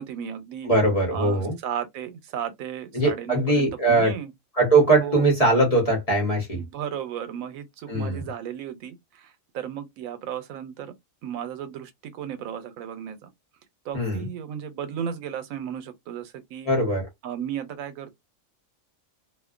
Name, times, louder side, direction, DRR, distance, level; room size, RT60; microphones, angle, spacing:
voice 1, 0.0-0.7 1.1-4.3 5.0-5.3 6.5-10.9 11.2-13.3 13.8-16.7 17.2-18.1, right 9 dB, 90° right, 1.0 m, -35 dB
voice 2, 0.7-1.6 2.9-4.2 4.6-6.6 7.9-8.2 13.9-14.3 16.7-17.0, right 2 dB, 30° left, 0.9 m, -21 dB
2.6 x 2.1 x 2.4 m
omnidirectional pair, 1.4 m